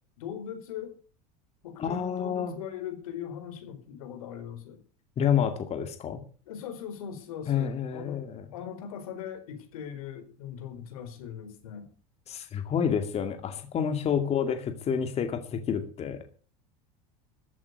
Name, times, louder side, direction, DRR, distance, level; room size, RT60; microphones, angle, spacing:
voice 1, 0.2-0.9 1.6-4.8 6.5-8.2 8.5-11.9 14.0-14.6, left 8 dB, 90° left, 7 dB, 4.6 m, -40 dB
voice 2, 1.8-2.6 5.2-6.2 7.5-8.5 12.3-16.2, left 8 dB, 35° left, 7 dB, 2.3 m, -29 dB
14.0 x 8.6 x 8.2 m, 0.41 s
supercardioid pair, 115°, 18 cm